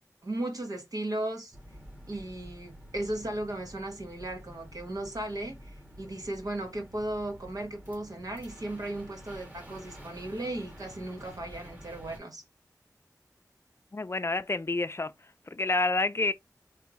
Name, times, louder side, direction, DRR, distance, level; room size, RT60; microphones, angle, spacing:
voice 1, 0.2-1.5 2.1-12.4, right 1 dB, 70° right, 1.3 m, -36 dB
sound 1, 1.5-12.2, equal, 25° right, 2.2 m, -49 dB
voice 2, 13.9-15.1 15.5-16.3, left 3 dB, 40° left, 0.5 m, -28 dB
4.5 x 3.3 x 3.0 m
wide cardioid pair, 65°, 7 cm